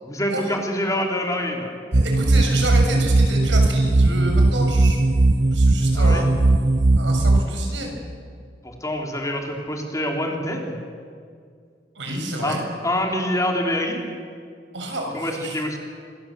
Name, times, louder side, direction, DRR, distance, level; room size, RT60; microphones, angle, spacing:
voice 1, 0.0-1.7 5.9-6.3 8.6-10.8 12.4-12.6 12.8-14.1 15.1-15.8, left 1 dB, 20° left, 1 dB, 3.5 m, -26 dB
sound 1, 1.9-7.4, right 2 dB, 45° right, 1.0 m, -18 dB
voice 2, 1.9-5.0 5.5-6.3 7.0-7.9 11.9-12.6 14.7-15.6, right 1 dB, 75° right, 2 dB, 6.7 m, -29 dB
26.0 x 23.0 x 7.6 m, 2.2 s
head